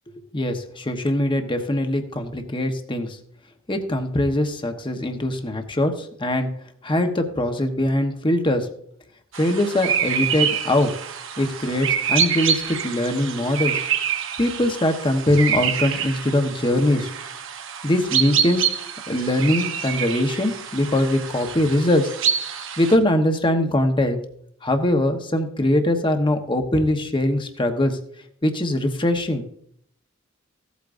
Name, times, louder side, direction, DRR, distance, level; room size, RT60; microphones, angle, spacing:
voice 1, 0.3-3.2 3.7-6.5 6.8-8.7 9.4-10.9 11.4-13.8 14.4-17.1 17.8-18.7 19.1-22.0 22.8-24.2 24.6-28.0 28.4-29.4, left 1 dB, 25° left, 5 dB, 1.1 m, -22 dB
sound 1, 9.3-23.0, right 8 dB, 65° right, 1.0 m, -26 dB
16.0 x 8.4 x 2.6 m, 0.68 s
head